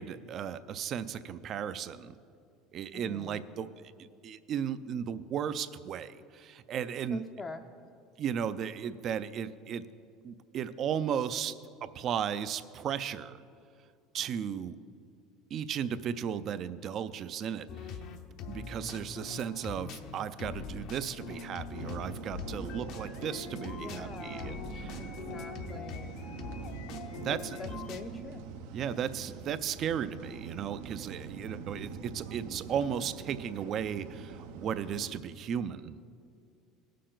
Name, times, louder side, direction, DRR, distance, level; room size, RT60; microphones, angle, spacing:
voice 1, 0.0-2.1 2.7-3.8 4.2-7.2 8.2-9.9 10.2-11.5 11.8-13.4 14.1-14.8 15.5-17.7 18.3-24.9 27.2-27.4 28.7-35.9, right 8 dB, 40° right, 14 dB, 0.4 m, -35 dB
voice 2, 2.9-3.4 7.1-7.6 23.8-24.6 25.0-26.1 27.3-28.4, left 4 dB, 20° left, 3 dB, 0.5 m, -44 dB
sound 1, 17.7-28.0, left 6 dB, 55° left, 0.7 m, -43 dB
sound 2, 21.7-35.1, right 6 dB, 80° right, 0.8 m, -44 dB
19.0 x 6.6 x 3.9 m, 2.4 s
cardioid pair, 135°, 0 cm